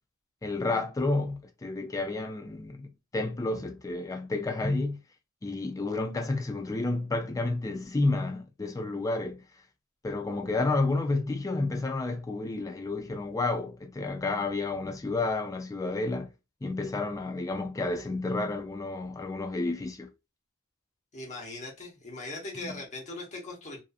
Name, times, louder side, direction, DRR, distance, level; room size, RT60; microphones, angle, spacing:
voice 1, 0.4-5.0 5.4-9.4 10.0-16.3 16.6-20.1 22.6-22.8, left 2 dB, 15° left, 0.3 m, -30 dB
voice 2, 21.1-23.8, left 2 dB, 35° left, 0.9 m, -40 dB
2.6 x 2.5 x 2.3 m
head